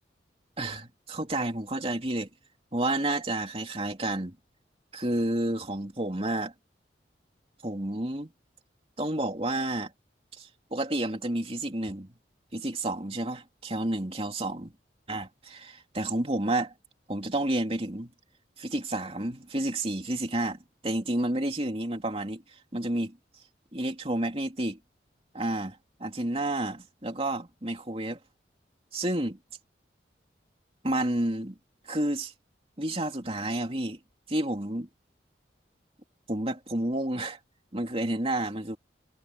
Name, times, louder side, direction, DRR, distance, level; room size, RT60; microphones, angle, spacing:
voice 1, 0.6-2.3 2.7-4.4 4.9-6.5 7.6-8.3 9.0-9.9 10.3-12.1 12.5-14.7 15.1-16.7 17.1-18.1 18.6-22.4 22.7-23.2 23.7-24.8 25.3-28.2 28.9-29.4 30.8-31.5 31.8-32.3 32.8-34.0 34.3-34.9 36.3-37.4 37.7-38.8, right 1 dB, 30° right, 3.0 m, -30 dB
head